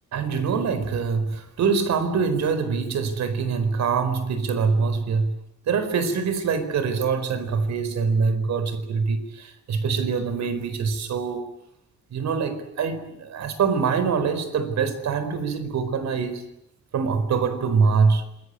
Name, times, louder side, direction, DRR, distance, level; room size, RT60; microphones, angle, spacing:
voice 1, 0.1-5.3 5.7-11.5 12.1-16.5 16.9-18.4, right 5 dB, 65° right, 11 dB, 4.6 m, -24 dB
27.0 x 22.5 x 9.7 m, 0.79 s
wide cardioid pair, 170°, 30 cm